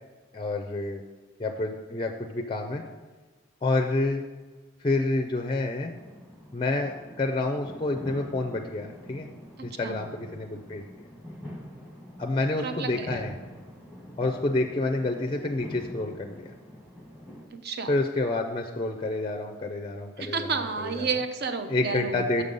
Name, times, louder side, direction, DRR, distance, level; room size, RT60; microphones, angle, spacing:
voice 1, 0.3-1.0 1.4-2.8 3.6-4.2 4.8-5.9 6.5-9.3 9.6-10.8 12.2-13.3 14.2-16.5 17.9-21.1 21.7-22.4, left 2 dB, 25° left, 4 dB, 0.4 m, -28 dB
sound 1, 5.9-17.5, equal, 10° right, 1.1 m, -45 dB
voice 2, 9.6-10.0 12.6-13.2 17.5-17.9 20.2-22.4, right 5 dB, 50° right, 8 dB, 0.6 m, -31 dB
6.6 x 5.4 x 5.2 m, 1.3 s
head